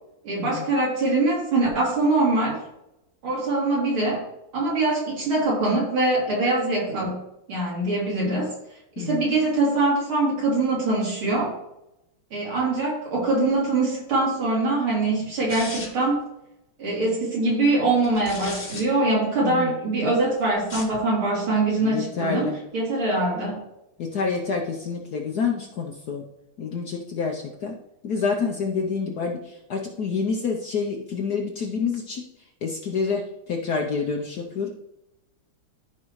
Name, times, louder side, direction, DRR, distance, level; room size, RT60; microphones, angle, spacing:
voice 1, 0.2-2.6 3.2-4.3 4.5-7.2 7.5-8.5 9.0-11.6 12.3-16.3 16.8-23.6, right 2 dB, 70° right, -5 dB, 3.9 m, -23 dB
voice 2, 9.0-9.3 19.4-19.8 21.8-22.6 24.0-26.2 26.6-27.7 28.0-32.2 32.6-34.7, left 5 dB, 60° left, 1 dB, 1.1 m, -28 dB
sound 1, 15.5-16.1 18.0-18.8 20.6-21.0, left 2 dB, 30° left, 1.3 m, -36 dB
13.5 x 4.7 x 3.2 m, 0.85 s
omnidirectional pair, 2.4 m